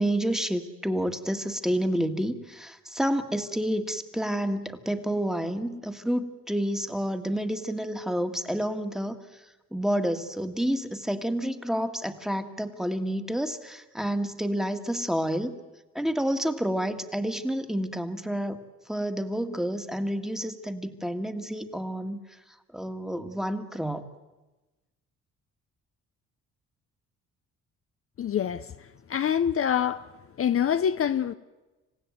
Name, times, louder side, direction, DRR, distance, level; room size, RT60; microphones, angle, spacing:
voice 1, 0.0-9.2 9.7-15.6 16.0-18.6 18.9-22.2 22.7-24.1, equal, ahead, 1.7 m, -29 dB
voice 2, 28.2-28.7 29.1-30.1 30.4-31.3, left 9 dB, 45° left, 0.7 m, -25 dB
27.0 x 16.0 x 9.1 m
cardioid pair, 90°, 30 cm